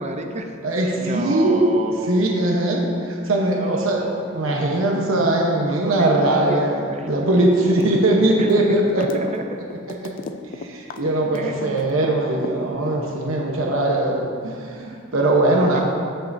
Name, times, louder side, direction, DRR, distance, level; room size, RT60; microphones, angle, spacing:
voice 1, 0.0-0.5 1.0-2.2 3.6-4.8 5.6-7.1 8.4-8.5 9.0-9.4 11.3-11.8 15.6-15.8, right 2 dB, 35° right, 4 dB, 0.5 m, -31 dB
voice 2, 0.6-1.7 2.1-4.0 4.3-9.2 10.0-10.1 10.6-15.8, right 1 dB, 70° right, -1 dB, 1.0 m, -20 dB
sound 1, 7.7-8.0 8.3-12.1 12.4-13.3, left 3 dB, 40° left, 0.4 m, -33 dB
15.5 x 5.6 x 2.6 m, 2.4 s
head